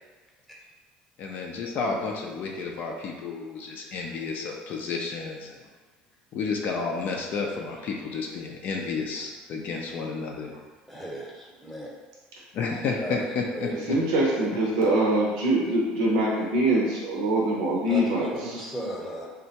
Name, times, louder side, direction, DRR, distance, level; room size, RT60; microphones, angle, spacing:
voice 1, 1.2-5.6 6.3-10.5 12.5-14.0, left 4 dB, 55° left, 0 dB, 0.4 m, -31 dB
voice 2, 10.9-11.9 13.0-13.8 17.9-19.3, equal, 5° left, -4 dB, 0.8 m, -36 dB
voice 3, 13.9-18.6, right 1 dB, 80° right, -4 dB, 0.6 m, -24 dB
3.4 x 2.1 x 2.8 m, 1.3 s
supercardioid pair, 80°, 4 cm